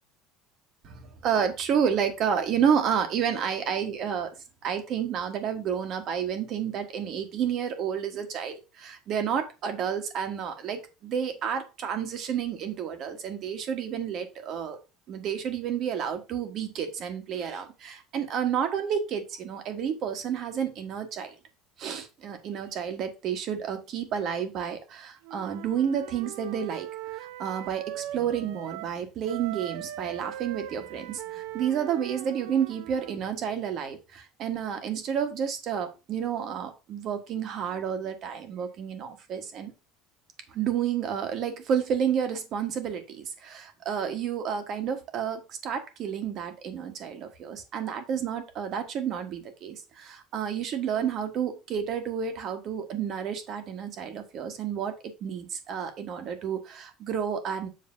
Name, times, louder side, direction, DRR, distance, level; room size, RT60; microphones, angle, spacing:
voice 1, 0.8-4.3 4.6-14.8 15.1-21.4 21.8-26.9 27.2-39.7 40.5-57.7, right 8 dB, 40° right, 7 dB, 1.4 m, -30 dB
Wind instrument woodwind instrument, 25.2-29.0 29.2-33.2, right 13 dB, 85° right, 0.5 m, -40 dB
7.6 x 3.2 x 5.9 m, 0.28 s
cardioid pair, 175°, 0 cm